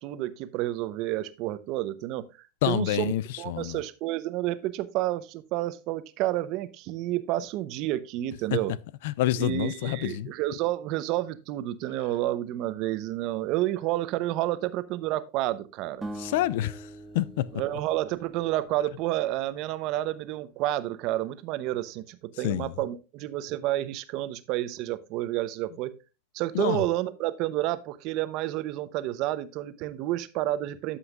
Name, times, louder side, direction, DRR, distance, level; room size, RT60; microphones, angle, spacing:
voice 1, 0.0-2.2 2.7-3.1 3.4-8.7 9.3-16.1 17.5-25.9 26.3-31.0, right 15 dB, 50° right, 0.8 m, -30 dB
voice 2, 2.6-3.8 8.5-8.6 9.0-10.3 16.2-16.9 17.1-17.5 22.4-22.7 26.5-26.8, left 14 dB, 65° left, 0.4 m, -27 dB
sound 1, 16.0-19.2, right 1 dB, 15° right, 1.5 m, -43 dB
13.5 x 5.7 x 2.5 m
hypercardioid pair, 115°, 0 cm